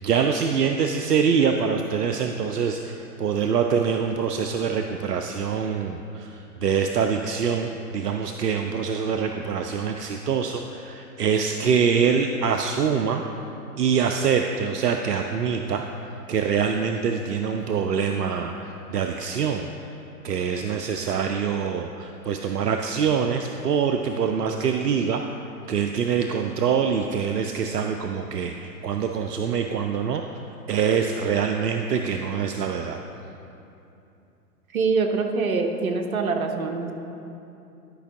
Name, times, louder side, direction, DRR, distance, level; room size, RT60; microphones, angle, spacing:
voice 1, 0.0-13.2 13.8-20.0 20.2-25.2 25.7-30.2 30.7-33.0, right 6 dB, 85° right, 4 dB, 0.5 m, -25 dB
voice 2, 34.7-36.9, right 4 dB, 65° right, 4 dB, 0.9 m, -24 dB
11.5 x 5.4 x 3.5 m, 2.8 s
figure-of-eight pair, 105°, 46 cm